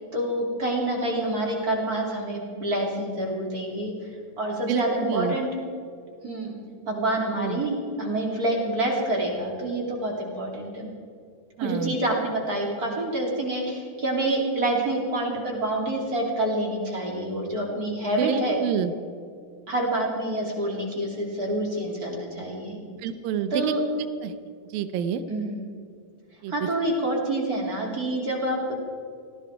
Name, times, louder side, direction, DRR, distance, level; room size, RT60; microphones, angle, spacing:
voice 1, 0.1-3.9 4.4-5.5 6.2-6.6 6.9-10.9 11.6-18.6 19.7-22.8 23.5-23.8 25.3-25.6 26.5-28.7, right 1 dB, 25° right, -1 dB, 3.1 m, -27 dB
voice 2, 4.7-5.4 7.4-7.6 11.6-12.0 18.1-18.9 23.0-23.7 24.2-24.3 24.7-25.2 26.4-26.5, right 7 dB, 90° right, 12 dB, 2.6 m, -28 dB
18.5 x 16.0 x 4.8 m, 2.4 s
omnidirectional pair, 4.0 m